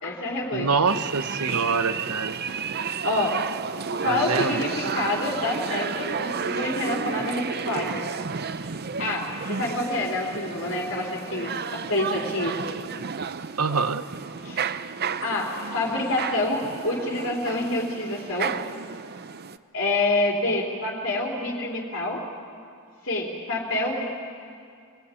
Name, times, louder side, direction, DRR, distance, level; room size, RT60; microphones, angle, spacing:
voice 1, 0.0-0.7 3.0-3.4 4.0-8.0 9.0-12.6 14.4-14.7 15.2-18.6 19.7-22.2 23.0-24.0, left 2 dB, 60° left, -2 dB, 3.6 m, -27 dB
voice 2, 0.5-2.4 4.0-4.6 13.6-14.0, right 4 dB, 85° right, 10 dB, 1.1 m, -25 dB
sound 1, 0.9-19.6, right 6 dB, 45° right, 0.7 m, -32 dB
27.0 x 20.5 x 9.1 m, 2.3 s
head